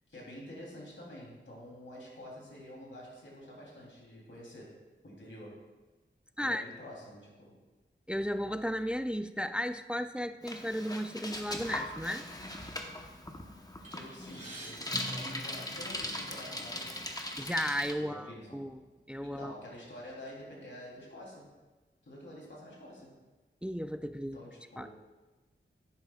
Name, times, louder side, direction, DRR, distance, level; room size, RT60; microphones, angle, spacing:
voice 1, 0.1-4.7 5.0-5.5 6.4-7.5 13.9-17.1 18.0-18.7 19.2-21.5 22.0-23.1 24.3-24.9, left 1 dB, 75° left, -4 dB, 3.1 m, -48 dB
voice 2, 8.1-12.2 17.4-19.5 23.6-24.4 24.8-24.9, equal, 5° right, 11 dB, 0.3 m, -34 dB
Bicycle, 10.4-17.9, left 1 dB, 20° left, 0.9 m, -39 dB
sound 1, 13.8-16.2 17.0-17.1 17.5-17.6 18.5-18.6 19.1-20.3, right 2 dB, 40° right, 2.6 m, -51 dB
10.5 x 10.0 x 2.4 m, 1.2 s
wide cardioid pair, 75°, 20 cm